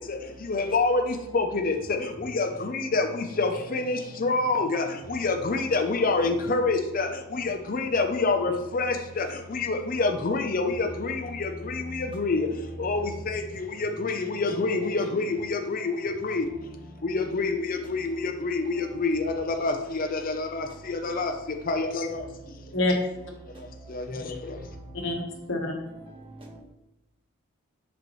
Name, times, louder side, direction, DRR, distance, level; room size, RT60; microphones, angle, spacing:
voice 1, 0.0-16.5 17.0-22.3 23.6-24.6, left 3 dB, 40° left, 0.5 m, -27 dB
voice 2, 1.3-1.7 2.5-2.6 3.3-5.0 5.8-6.7 9.9-10.1 10.7-10.8 11.7-12.3 12.8-13.1 13.9-14.0 14.4-15.3 15.7-15.9 16.4-16.6 17.8-18.2 18.7-19.0 20.7-20.8 21.0-21.5 22.1-22.2 22.5-22.7 23.5-23.9 24.3-25.3 25.8-26.6, right 1 dB, 25° right, 1.3 m, -45 dB
voice 3, 22.7-22.9 24.9-25.2 25.5-25.7, left 2 dB, 55° left, 1.3 m, -25 dB
8.2 x 5.4 x 3.1 m
head